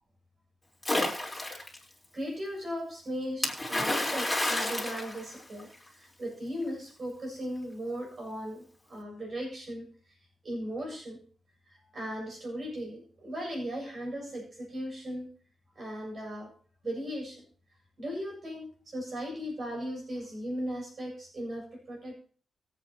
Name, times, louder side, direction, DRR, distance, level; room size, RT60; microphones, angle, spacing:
Splash splatter, 0.8-1.8 3.4-5.9, left 1 dB, 5° left, 4.2 m, -30 dB
voice 1, 2.1-9.9 10.4-11.2 11.7-15.3 15.7-16.5 16.8-17.4 18.0-22.1, equal, 45° right, 1 dB, 7.9 m, -37 dB
24.0 x 8.5 x 3.1 m, 0.42 s
wide cardioid pair, 115°, 0 cm